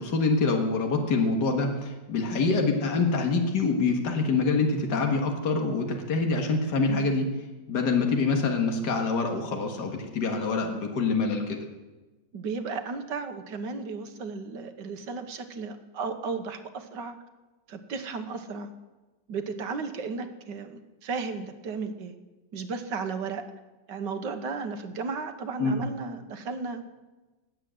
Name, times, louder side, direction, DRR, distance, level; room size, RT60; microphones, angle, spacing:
voice 1, 0.0-7.3 7.7-11.6 25.6-25.8, left 3 dB, 70° left, 3 dB, 2.2 m, -25 dB
voice 2, 12.3-17.2 17.7-18.7 19.3-22.2 22.5-23.4 23.9-26.9, right 4 dB, 80° right, 8 dB, 1.8 m, -34 dB
19.0 x 7.9 x 7.7 m, 1.2 s
omnidirectional pair, 1.9 m